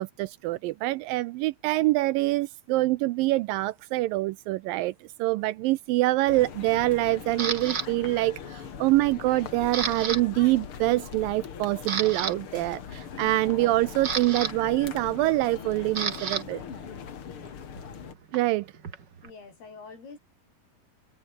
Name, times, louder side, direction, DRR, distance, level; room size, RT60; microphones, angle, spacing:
voice 1, 0.0-4.9 5.2-16.6 18.3-18.7, right 18 dB, 80° right, 2.1 m, -25 dB
sound 1, 6.3-18.1, left 8 dB, 45° left, 2.1 m, -41 dB
Camera, 7.4-7.9 8.5-8.8 9.1-10.2 10.5-10.7 11.2-11.3 11.7-12.3 13.5-16.4 16.7-19.3, right 6 dB, 35° right, 2.1 m, -32 dB
voice 2, 19.2-20.2, left 4 dB, 90° left, 9.6 m, -45 dB
omnidirectional pair, 4.4 m